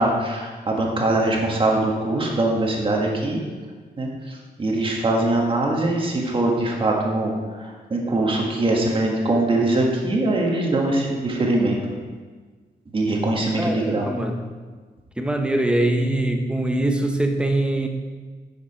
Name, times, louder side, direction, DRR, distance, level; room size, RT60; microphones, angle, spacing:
voice 1, 0.0-3.4 4.0-11.8 12.9-14.1, right 2 dB, 30° right, -1 dB, 1.6 m, -22 dB
voice 2, 13.6-14.5 15.2-17.9, right 1 dB, 5° right, 4 dB, 0.8 m, -23 dB
10.0 x 7.5 x 4.3 m, 1.5 s
wide cardioid pair, 170°, 17 cm